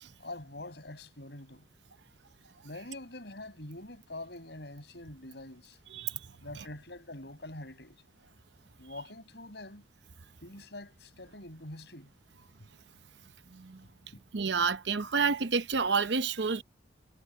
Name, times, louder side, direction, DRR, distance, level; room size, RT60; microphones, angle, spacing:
voice 1, 0.2-1.7 2.6-5.8 6.4-8.0 8.8-9.8 10.4-12.1 13.8-14.2, left 2 dB, 65° left, 7.8 m, -45 dB
voice 2, 5.9-6.3 13.5-13.8 14.3-16.6, right 5 dB, 75° right, 0.8 m, -29 dB
head